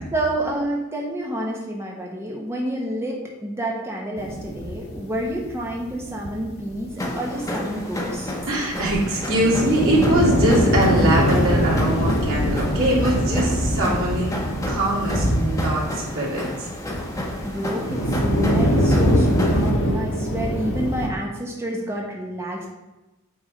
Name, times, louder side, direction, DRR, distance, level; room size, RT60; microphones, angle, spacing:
voice 1, 0.1-8.3 17.4-22.7, right 1 dB, 15° right, -2 dB, 1.1 m, -29 dB
sound 1, 4.2-7.2 7.5-7.6 7.8-7.9 8.2-8.3 8.7-16.4 16.8-21.1, equal, 75° left, 1.3 m, -22 dB
sound 2, 7.0-19.7, left 1 dB, 15° left, 1.0 m, -31 dB
voice 2, 8.5-14.3 14.7-15.8 16.1-16.7, right 1 dB, 85° right, -5 dB, 2.5 m, -22 dB
8.5 x 3.6 x 5.0 m, 1.0 s
head